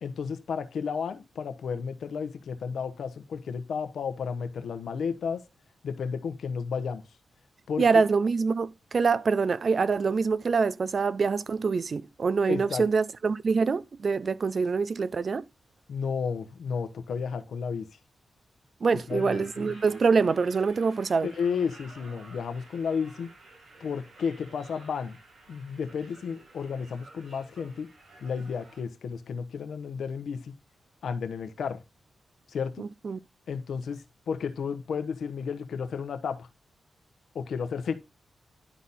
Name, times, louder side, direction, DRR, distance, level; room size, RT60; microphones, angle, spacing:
voice 1, 0.0-5.4 5.8-7.0 7.7-7.8 12.5-12.8 15.9-17.9 19.1-19.4 21.2-23.3 23.8-25.2 25.5-27.9 28.2-30.5 31.0-31.8 32.5-32.8 33.5-36.5 37.3-37.9, left 6 dB, 75° left, 1.0 m, -32 dB
voice 2, 7.8-15.4 18.8-21.3 32.8-33.2, right 5 dB, 60° right, 0.5 m, -25 dB
sound 1, 19.1-28.8, right 2 dB, 75° right, 5.9 m, -52 dB
11.0 x 4.1 x 4.1 m
supercardioid pair, 45°, 0 cm